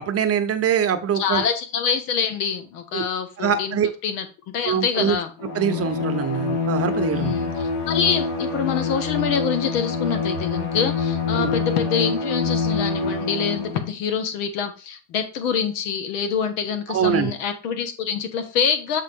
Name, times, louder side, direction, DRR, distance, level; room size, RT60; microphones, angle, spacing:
voice 1, 0.0-1.4 2.9-3.0 3.4-3.9 4.6-5.2 5.5-7.3 11.3-11.5 16.9-17.3, right 8 dB, 30° right, 9 dB, 0.7 m, -23 dB
voice 2, 1.1-3.8 4.0-5.3 7.1-19.0, left 7 dB, 85° left, 8 dB, 1.4 m, -26 dB
Bowed string instrument, 5.4-13.9, left 5 dB, 55° left, 1.8 m, -26 dB
7.3 x 3.7 x 3.6 m, 0.35 s
supercardioid pair, 105°, 46 cm